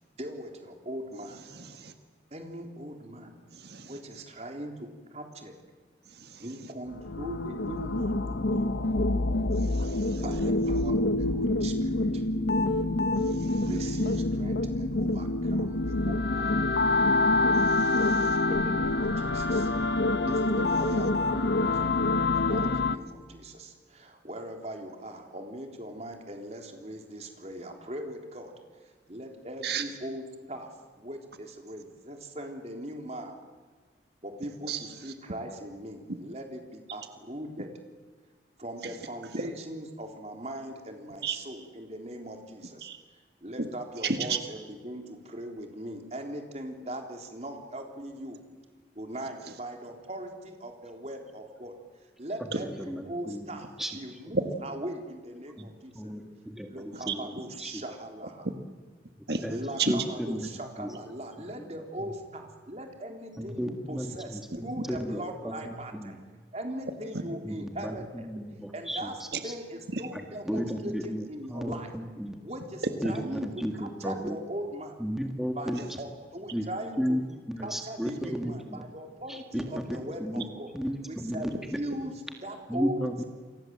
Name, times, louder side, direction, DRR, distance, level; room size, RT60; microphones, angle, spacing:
voice 1, 0.2-1.4 2.3-3.4 3.9-5.6 6.4-8.8 10.2-12.2 13.6-16.6 18.5-19.7 20.2-28.5 28.8-33.4 34.2-37.7 38.6-42.9 43.4-48.4 49.0-51.8 52.2-53.7 53.9-56.1 56.6-58.5 59.5-66.2 66.5-68.3 68.7-69.2 69.4-71.9 72.4-75.0 75.6-77.2 77.6-80.7 81.1-81.5 81.7-83.0, right 1 dB, 35° right, 3 dB, 3.7 m, -40 dB
voice 2, 1.5-1.9 3.5-4.0 6.1-6.5 9.5-10.2 13.2-13.7 17.6-18.5 29.6-29.8 34.7-35.1 36.1-36.2 38.8-39.0 39.3-39.4 41.2-41.4 42.8-43.0 43.6-43.7 44.0-44.4 52.5-52.6 54.3-54.4 57.1-57.2 59.3-59.4 59.8-59.9 64.8-64.9 69.9-70.0 72.8-73.1, right 4 dB, 65° right, 7 dB, 1.7 m, -33 dB
sound 1, 6.9-23.0, left 2 dB, 75° left, 1.0 m, -26 dB
voice 3, 52.4-54.0 55.6-55.7 56.0-57.8 59.4-60.5 60.8-60.9 61.6-61.7 62.0-62.1 63.4-66.2 67.4-69.5 70.1-72.4 73.0-74.4 75.0-76.0 76.5-76.7 77.0-78.8 79.3-80.4 80.7-82.1 82.7-83.2, equal, ahead, 3 dB, 1.9 m, -34 dB
29.0 x 24.0 x 7.7 m, 1.5 s
head